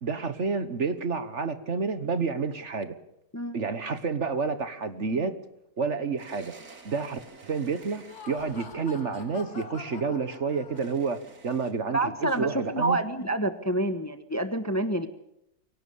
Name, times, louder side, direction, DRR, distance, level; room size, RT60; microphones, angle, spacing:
voice 1, 0.0-2.9 3.5-5.4 5.8-6.5 6.8-13.0, right 4 dB, 50° right, 1.5 m, -29 dB
sound 1, 6.2-8.6 10.7-11.7, right 4 dB, 70° right, 3.0 m, -50 dB
Laughter, 7.9-11.2, left 5 dB, 70° left, 2.8 m, -45 dB
voice 2, 11.9-15.1, right 1 dB, 10° left, 1.1 m, -27 dB
24.0 x 18.0 x 7.0 m
omnidirectional pair, 1.7 m